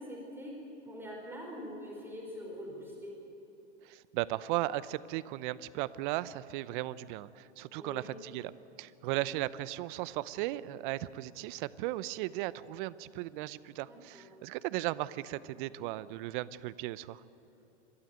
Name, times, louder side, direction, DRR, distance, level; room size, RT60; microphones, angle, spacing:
voice 1, 0.0-3.2 7.8-8.1 9.2-9.3 13.9-14.3, equal, 5° right, -2 dB, 4.7 m, -44 dB
voice 2, 3.8-8.5 8.8-17.2, right 16 dB, 45° right, 17 dB, 0.7 m, -36 dB
27.5 x 13.0 x 9.1 m, 2.9 s
hypercardioid pair, 115°, 35 cm